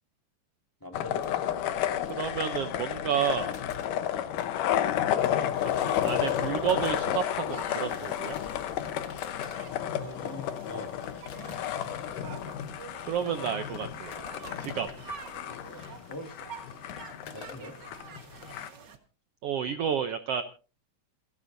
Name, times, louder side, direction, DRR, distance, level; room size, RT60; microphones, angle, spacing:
voice 1, 0.8-1.9 9.8-10.9 16.1-16.4 17.3-17.8, left 1 dB, 10° left, 3 dB, 1.3 m, -43 dB
sound 1, 0.9-18.7, left 10 dB, 85° left, 2.6 m, -32 dB
sound 2, 1.2-18.6, left 6 dB, 50° left, 1.5 m, -48 dB
voice 2, 2.1-3.5 5.6-5.8 6.0-8.4 13.1-14.1 14.6-14.9 19.4-20.4, right 8 dB, 75° right, 9 dB, 1.4 m, -30 dB
sound 3, 5.5-19.0, right 6 dB, 45° right, 1.5 m, -48 dB
28.0 x 11.5 x 2.7 m, 0.36 s
omnidirectional pair, 3.6 m